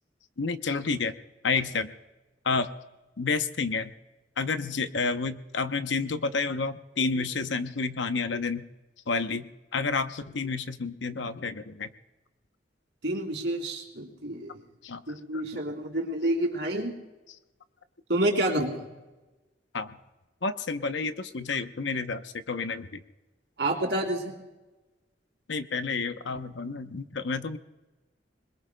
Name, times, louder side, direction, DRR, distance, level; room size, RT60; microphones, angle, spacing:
voice 1, 0.4-1.1 1.4-1.9 2.4-2.7 3.2-3.9 4.4-8.6 9.1-9.4 9.7-11.9 14.8-15.0 15.3-15.4 19.7-20.0 20.4-23.0 25.5-27.6, left 4 dB, 85° left, 10 dB, 0.8 m, -30 dB
voice 2, 13.0-14.5 15.1-16.9 18.1-18.8 23.6-24.3, right 1 dB, 75° right, 1 dB, 3.1 m, -28 dB
25.5 x 21.5 x 2.2 m, 1.1 s
head